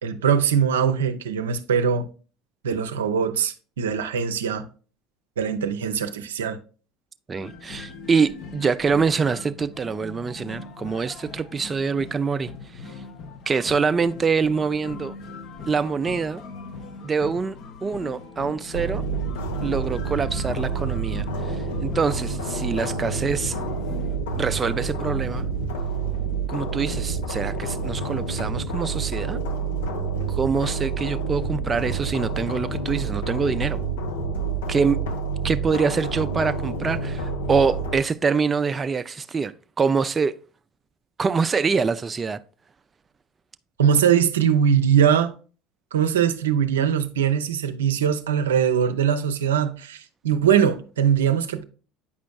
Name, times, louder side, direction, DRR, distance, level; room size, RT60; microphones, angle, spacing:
voice 1, 0.0-2.1 2.6-4.6 5.4-6.6 43.8-45.3 45.9-51.6, right 8 dB, 85° right, 0.5 m, -21 dB
sound 1, 7.3-24.2, left 4 dB, 55° left, 0.9 m, -40 dB
voice 2, 7.3-13.0 13.5-15.1 15.7-16.4 17.0-17.6 17.8-19.0 19.6-23.6 24.4-25.5 26.5-29.4 30.3-33.8 34.7-35.0 35.4-40.3 41.2-42.4, right 5 dB, 25° right, 0.3 m, -25 dB
sound 2, 18.7-38.0, right 4 dB, 80° left, 0.9 m, -28 dB
8.5 x 5.1 x 2.3 m
hypercardioid pair, 75°, 0 cm